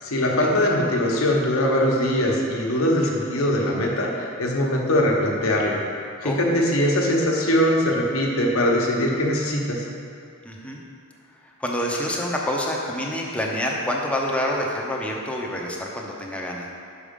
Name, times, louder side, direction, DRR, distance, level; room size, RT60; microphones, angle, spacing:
voice 1, 0.0-5.8 6.2-9.8, left 1 dB, 75° left, -2 dB, 1.0 m, -21 dB
voice 2, 10.4-10.8 11.4-16.7, left 1 dB, 5° left, -2 dB, 0.7 m, -27 dB
6.1 x 5.0 x 5.2 m, 2.6 s
head